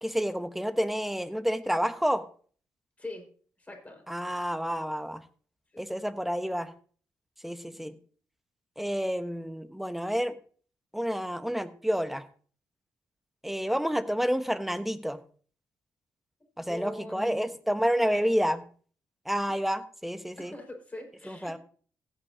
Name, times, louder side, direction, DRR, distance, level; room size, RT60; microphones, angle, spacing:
voice 1, 0.0-2.2 4.1-5.2 5.8-6.7 7.4-7.9 8.8-10.4 10.9-12.3 13.4-15.2 16.6-18.6 19.2-20.5 21.2-21.6, equal, 5° right, 10 dB, 1.1 m, -29 dB
voice 2, 3.6-4.0 5.7-5.8 7.7-8.0 16.7-17.4 17.8-18.2 19.5-19.6 20.4-21.6, left 1 dB, 20° left, 2 dB, 5.1 m, -42 dB
16.0 x 9.1 x 2.8 m, 0.44 s
supercardioid pair, 65°, 7 cm